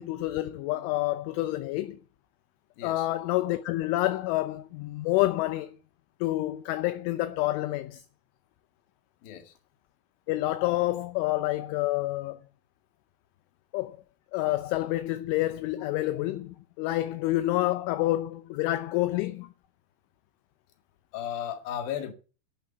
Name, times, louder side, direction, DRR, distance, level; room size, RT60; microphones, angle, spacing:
voice 1, 0.0-2.0 2.8-5.8 6.2-8.0 10.3-12.4 13.7-14.0 14.3-19.5, left 16 dB, 80° left, 3.0 m, -28 dB
voice 2, 2.8-3.1 9.2-9.5 21.1-22.1, left 10 dB, 55° left, 3.1 m, -35 dB
11.0 x 9.5 x 8.3 m
omnidirectional pair, 6.0 m